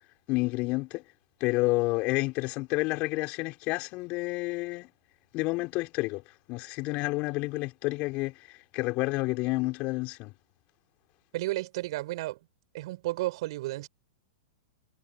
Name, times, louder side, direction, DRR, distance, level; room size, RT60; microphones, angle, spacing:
voice 1, 0.3-1.0 1.4-4.9 5.3-6.2 6.5-10.3, left 23 dB, 45° left, 4.1 m, -29 dB
voice 2, 11.3-12.4 12.7-13.9, right 18 dB, 60° right, 3.6 m, -32 dB
hypercardioid pair, 110°, 3 cm